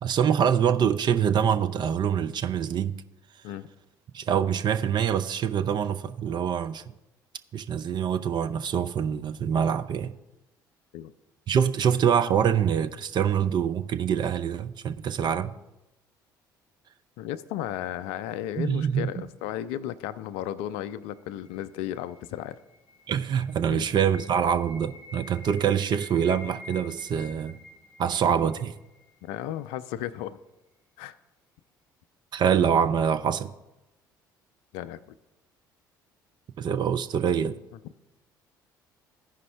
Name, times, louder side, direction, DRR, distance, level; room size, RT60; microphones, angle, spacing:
voice 1, 0.0-3.0 4.1-6.8 7.5-10.1 11.5-15.5 18.6-19.1 23.1-27.6 28.0-28.8 32.3-33.5 36.6-37.6, right 8 dB, 45° right, 0.5 m, -25 dB
voice 2, 17.2-22.6 23.7-23.9 29.2-30.4 31.0-31.2 34.7-35.0, left 12 dB, 65° left, 0.4 m, -34 dB
sound 1, 21.0-29.7, left 3 dB, 90° right, 3.5 m, -49 dB
14.5 x 5.1 x 3.3 m
figure-of-eight pair, 55°, 11 cm